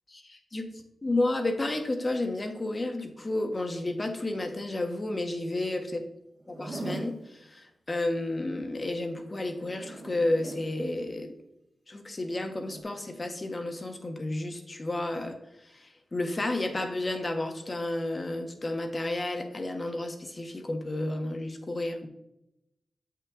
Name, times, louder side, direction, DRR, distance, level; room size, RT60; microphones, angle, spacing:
voice 1, 0.1-0.6 1.0-6.0 6.5-11.3 11.9-15.4 15.7-15.8 16.1-22.1, left 2 dB, 30° left, 5 dB, 1.2 m, -31 dB
Zipper (clothing), 6.4-7.2 9.3-10.7 12.5-12.8, right 2 dB, 50° right, 1.9 m, -40 dB
7.7 x 6.0 x 3.6 m, 0.85 s
wide cardioid pair, 90°, 0 cm